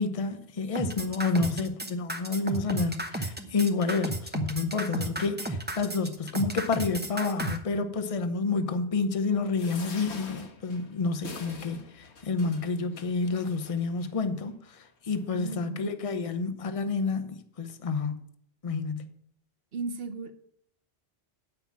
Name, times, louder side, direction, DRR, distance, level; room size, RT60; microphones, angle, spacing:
voice 1, 0.0-14.5 15.1-18.2 18.6-19.1, left 4 dB, 35° left, 0.8 m, -29 dB
sound 1, 0.7-7.6, right 1 dB, 10° right, 0.8 m, -33 dB
sound 2, 9.5-14.1 14.7-14.8 15.1-15.2, left 4 dB, 75° left, 1.5 m, -46 dB
voice 2, 15.3-16.3 19.7-20.3, right 4 dB, 60° right, 1.1 m, -36 dB
8.9 x 5.8 x 7.3 m
omnidirectional pair, 1.2 m